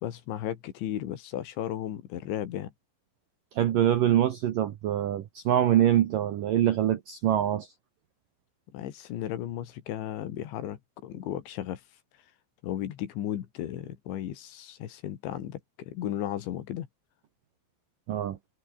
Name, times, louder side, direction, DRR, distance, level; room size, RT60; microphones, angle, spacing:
voice 1, 0.0-2.7 8.7-11.8 12.6-16.9, left 11 dB, 70° left, 4.2 m, -35 dB
voice 2, 3.5-7.7 18.1-18.4, right 11 dB, 70° right, 2.1 m, -24 dB
omnidirectional pair, 5.7 m